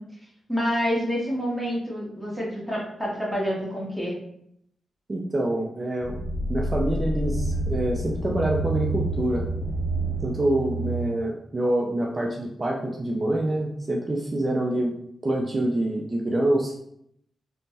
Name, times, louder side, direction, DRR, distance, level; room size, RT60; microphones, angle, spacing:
voice 1, 0.5-4.2, equal, 5° left, -4 dB, 1.1 m, -27 dB
voice 2, 5.1-6.2 6.5-9.5 10.2-15.0 15.2-16.7, right 1 dB, 35° right, -1 dB, 0.4 m, -26 dB
sound 1, 6.0-11.1, right 1 dB, 45° left, 0.5 m, -28 dB
3.2 x 2.1 x 2.7 m, 0.73 s
supercardioid pair, 50°, 0 cm